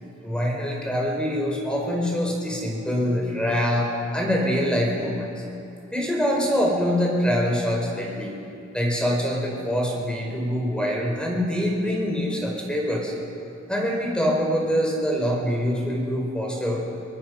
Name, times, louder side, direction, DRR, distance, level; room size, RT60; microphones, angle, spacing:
voice 1, 0.2-5.3 5.9-8.3 8.7-13.1 13.7-16.8, equal, 5° left, -1 dB, 4.8 m, -24 dB
24.0 x 20.0 x 6.6 m, 2.6 s
head